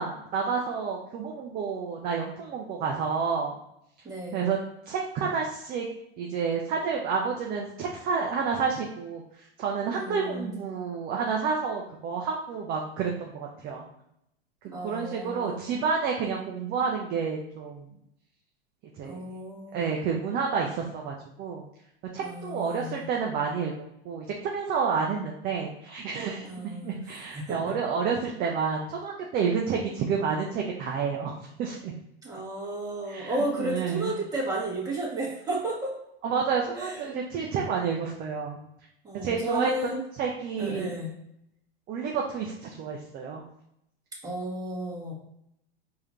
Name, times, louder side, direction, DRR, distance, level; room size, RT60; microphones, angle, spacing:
voice 1, 0.0-3.5 4.3-4.6 4.9-5.9 6.2-13.8 14.8-17.9 19.0-19.2 19.7-21.7 22.1-23.7 24.0-26.5 26.8-31.9 33.1-34.1 36.2-38.6 39.1-39.7 40.2-40.9 41.9-43.4, right 5 dB, 30° right, 0 dB, 0.5 m, -29 dB
voice 2, 4.0-4.5 9.9-10.5 14.7-15.7 19.0-20.0 22.2-23.0 26.4-27.8 32.2-35.9 36.8-37.2 39.0-40.0 40.6-41.1 44.2-45.1, right 1 dB, 10° right, -6 dB, 1.5 m, -33 dB
4.7 x 2.8 x 3.0 m, 0.78 s
hypercardioid pair, 125°, 32 cm